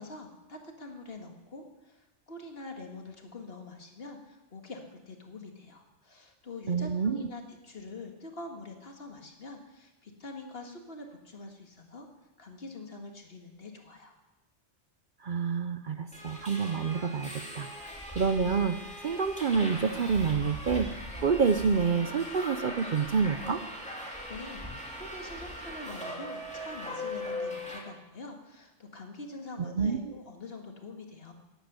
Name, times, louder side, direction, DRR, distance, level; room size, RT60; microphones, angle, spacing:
voice 1, 0.0-12.1 12.4-14.1 24.0-31.3, left 2 dB, 55° left, 3 dB, 2.2 m, -45 dB
voice 2, 6.7-7.2 15.2-18.8 19.0-20.9 21.2-23.6 29.8-30.1, right 5 dB, 50° right, 10 dB, 0.7 m, -28 dB
Subway metro underground, 16.1-27.8, left 1 dB, 5° left, 2.7 m, -40 dB
13.5 x 10.5 x 8.1 m, 1.0 s
omnidirectional pair, 1.2 m